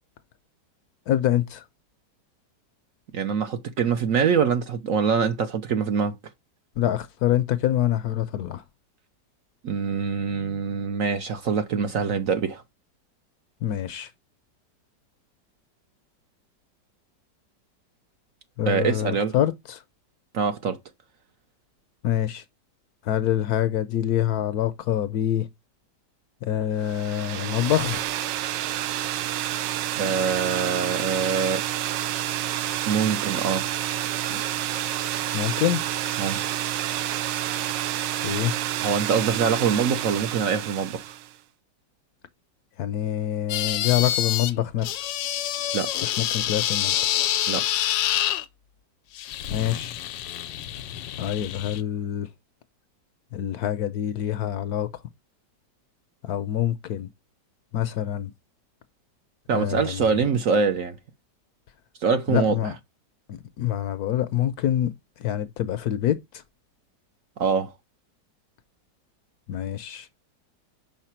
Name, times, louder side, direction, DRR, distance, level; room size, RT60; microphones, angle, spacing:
voice 1, 1.1-1.6 6.8-8.6 13.6-14.1 18.6-19.8 22.0-22.4 23.0-25.5 26.4-28.0 30.0-30.1 34.3-34.4 35.3-35.8 38.2-38.5 42.8-45.1 46.0-47.0 49.5-50.0 51.2-52.3 53.3-54.9 56.2-57.1 57.7-58.3 59.5-60.1 62.3-62.7 63.3-66.4 69.5-70.1, left 11 dB, 70° left, 1.0 m, -26 dB
voice 2, 3.1-6.1 9.6-12.6 18.7-19.3 20.3-20.8 30.0-31.6 32.9-33.7 36.2-36.4 38.8-41.2 45.7-45.9 47.5-47.6 59.5-61.0 62.0-62.6 67.4-67.7, right 6 dB, 60° right, 0.9 m, -24 dB
sound 1, 26.8-41.3, right 12 dB, 90° right, 1.3 m, -29 dB
sound 2, 43.5-44.5 44.8-48.4 49.2-51.8, left 12 dB, 90° left, 1.3 m, -27 dB
5.8 x 4.6 x 4.4 m
omnidirectional pair, 1.9 m